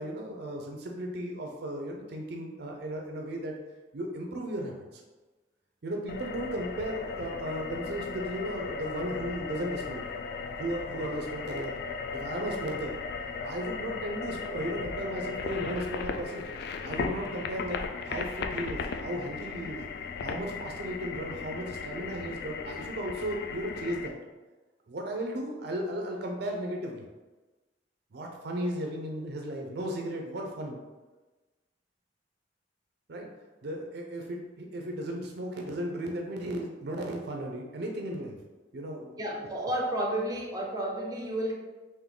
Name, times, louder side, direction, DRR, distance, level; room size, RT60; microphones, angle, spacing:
voice 1, 0.0-3.5 3.9-5.0 5.8-10.0 10.6-11.7 12.1-13.0 13.4-16.5 16.8-19.8 20.2-24.1 24.9-27.0 28.1-30.8 33.1-33.3 33.6-38.4 38.7-39.2, right 1 dB, 60° right, 1 dB, 0.5 m, -35 dB
sound 1, 6.1-24.1, left 5 dB, 60° left, 0.3 m, -37 dB
voice 2, 39.2-41.5, right 1 dB, 20° right, -1 dB, 0.7 m, -31 dB
3.6 x 2.6 x 3.7 m, 1.2 s
head